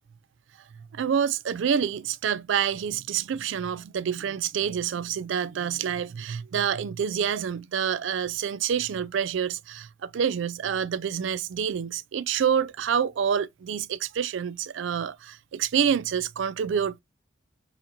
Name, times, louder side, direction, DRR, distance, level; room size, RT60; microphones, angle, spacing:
voice 1, 0.9-17.0, right 8 dB, 75° right, 0.3 m, -27 dB
4.1 x 2.6 x 2.8 m
head